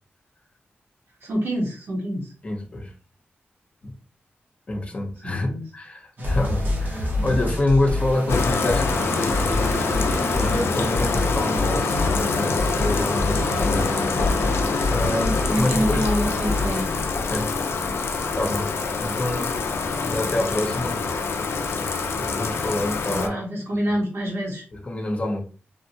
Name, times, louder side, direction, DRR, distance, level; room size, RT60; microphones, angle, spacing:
voice 1, 1.2-2.3 5.2-5.6 7.1-7.5 15.1-16.9 23.1-24.6, equal, 75° right, -3 dB, 1.3 m, -27 dB
voice 2, 2.4-2.9 3.8-3.9 4.7-15.2 15.6-16.1 17.3-17.5 18.4-18.7 19.0-19.6 20.0-21.0 22.2-23.3 24.7-25.4, left 1 dB, 30° left, 2 dB, 0.6 m, -27 dB
sound 1, 6.2-16.8, left 2 dB, 50° right, 0.7 m, -27 dB
Bathtub (filling or washing), 8.3-23.3, left 4 dB, 85° left, 0.4 m, -25 dB
Brass instrument, 8.6-11.3, right 1 dB, 5° right, 0.6 m, -39 dB
3.5 x 2.1 x 2.6 m, 0.36 s
wide cardioid pair, 135°, 4 cm